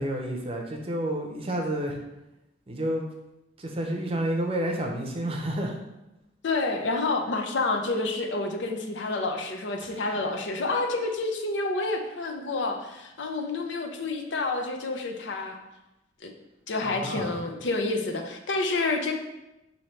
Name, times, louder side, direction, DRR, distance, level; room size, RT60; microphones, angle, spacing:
voice 1, 0.0-2.0 2.7-3.0 3.6-5.8 9.8-9.9 16.8-17.4, right 1 dB, 30° right, 2 dB, 0.6 m, -30 dB
voice 2, 6.4-15.6 16.2-16.3 16.7-19.1, left 3 dB, 85° left, 4 dB, 0.6 m, -29 dB
5.5 x 2.7 x 3.2 m, 0.94 s
head